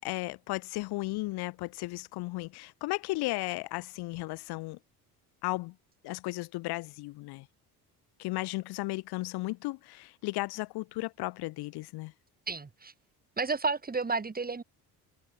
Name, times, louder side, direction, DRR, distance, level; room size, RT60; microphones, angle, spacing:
voice 1, 0.0-4.8 5.4-5.7 6.0-7.5 8.2-12.1, left 21 dB, 80° left, 2.4 m, -35 dB
voice 2, 12.5-12.9 13.4-14.6, right 4 dB, 25° right, 4.4 m, -31 dB
supercardioid pair, 90°, 38 cm